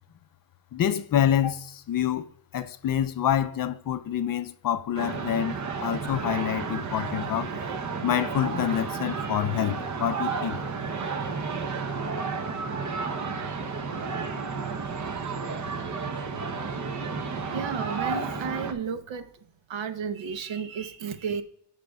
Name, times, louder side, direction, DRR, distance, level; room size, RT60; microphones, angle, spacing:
voice 1, 0.7-2.3 2.5-7.5 8.0-10.6, left 10 dB, 50° left, 0.4 m, -27 dB
sound 1, 4.9-18.7, right 5 dB, 40° right, 0.8 m, -32 dB
voice 2, 17.5-19.3 19.7-21.4, right 6 dB, 70° right, 0.9 m, -32 dB
14.5 x 5.1 x 2.3 m
cardioid pair, 125°, 47 cm